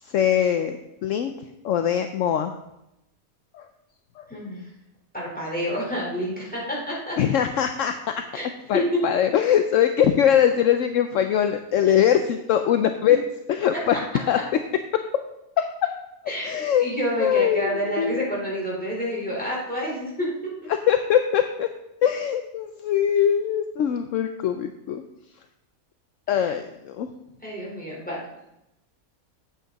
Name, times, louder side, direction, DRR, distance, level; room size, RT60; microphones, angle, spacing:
voice 1, 0.0-2.5 3.5-3.6 4.2-4.3 7.2-7.9 8.7-13.2 13.5-14.0 14.3-14.4 16.4-16.9 17.2-18.2 20.9-21.7 22.0-25.0 26.3-27.1, left 9 dB, 70° left, 7 dB, 0.9 m, -22 dB
voice 2, 4.3-4.7 5.1-7.2 8.3-8.4 8.7-8.8 16.3-20.5 26.3-26.5 27.4-28.2, equal, 5° left, -5 dB, 3.8 m, -29 dB
8.5 x 8.3 x 4.0 m, 0.86 s
omnidirectional pair, 1.5 m